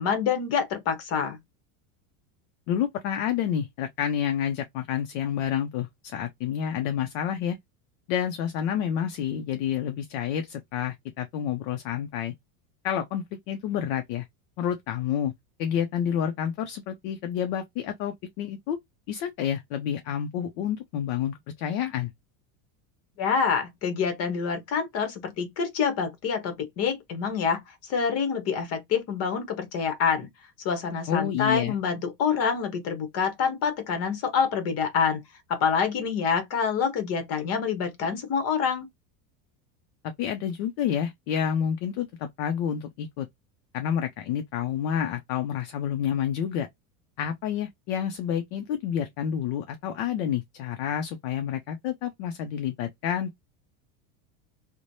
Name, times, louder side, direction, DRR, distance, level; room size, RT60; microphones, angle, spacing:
voice 1, 0.0-1.4 23.2-30.3 30.6-35.2 35.5-38.9, left 6 dB, 35° left, 0.9 m, -26 dB
voice 2, 2.7-7.6 8.1-12.3 12.8-14.3 14.6-15.3 15.6-18.8 19.1-22.1 31.1-31.7 40.2-43.3 43.7-46.7 47.2-53.4, left 9 dB, 55° left, 0.5 m, -29 dB
3.1 x 2.1 x 2.6 m
supercardioid pair, 165°, 42 cm